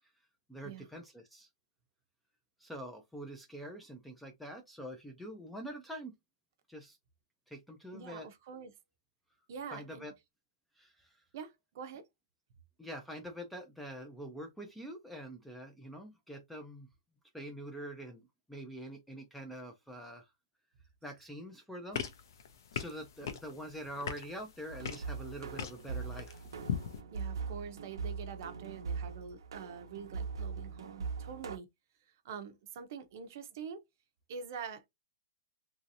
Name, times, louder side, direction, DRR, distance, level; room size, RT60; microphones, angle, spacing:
voice 1, 0.5-1.5 2.6-6.1 6.7-7.0 7.5-8.3 9.7-10.1 10.8-11.2 12.8-16.9 17.3-20.3 21.0-22.0 22.7-26.4, equal, ahead, 0.4 m, -45 dB
voice 2, 7.9-8.7 9.5-10.1 11.3-12.1 27.1-31.7 32.2-33.8 34.3-34.9, right 6 dB, 40° right, 0.6 m, -45 dB
sound 1, 21.9-27.0, left 7 dB, 55° left, 0.6 m, -41 dB
sound 2, 24.7-31.6, right 5 dB, 80° right, 0.8 m, -41 dB
3.0 x 2.7 x 2.6 m
hypercardioid pair, 170°, 2 cm